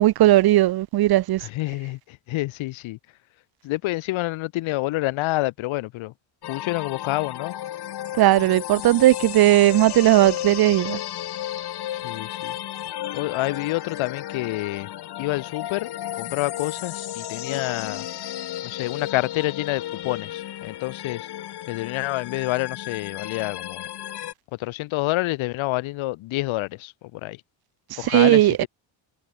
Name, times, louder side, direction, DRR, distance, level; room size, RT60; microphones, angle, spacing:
voice 1, 0.0-1.5 8.2-11.0 28.0-28.6, right 15 dB, 50° right, 0.8 m, -17 dB
voice 2, 1.4-3.0 3.6-6.1 6.5-7.5 11.9-12.6 13.1-14.9 15.2-18.1 18.6-21.3 21.7-23.9 24.5-27.4 28.0-28.7, left 19 dB, 80° left, 7.2 m, -28 dB
sound 1, 6.4-24.3, left 12 dB, 55° left, 2.4 m, -34 dB
cardioid pair, 100°, 47 cm